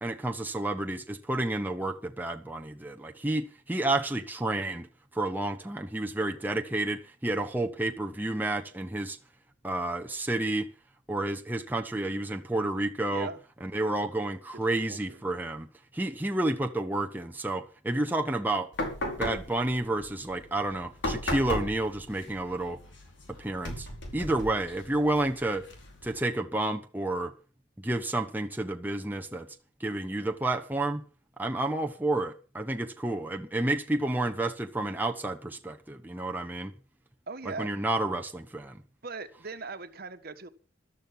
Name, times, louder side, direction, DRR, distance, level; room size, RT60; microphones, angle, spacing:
voice 1, 0.0-4.9 5.1-9.2 9.6-10.7 11.1-13.3 13.6-15.7 15.9-18.7 19.2-22.8 23.3-23.9 24.1-25.7 26.0-27.3 27.8-29.5 29.8-31.0 31.4-36.7 37.4-38.8, right 2 dB, 10° right, 1.0 m, -30 dB
voice 2, 13.1-13.4 14.7-15.2 37.3-37.7 39.0-40.5, right 4 dB, 50° right, 1.5 m, -40 dB
sound 1, 18.7-26.2, left 1 dB, 65° left, 5.1 m, -37 dB
14.0 x 12.5 x 5.9 m
head